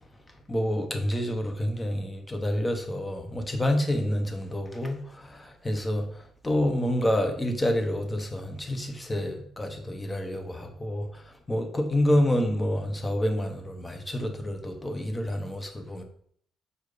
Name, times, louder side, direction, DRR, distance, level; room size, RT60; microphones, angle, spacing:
voice 1, 0.5-16.0, left 1 dB, 20° left, 1.3 m, -28 dB
6.5 x 4.6 x 5.1 m
cardioid pair, 90°, 0 cm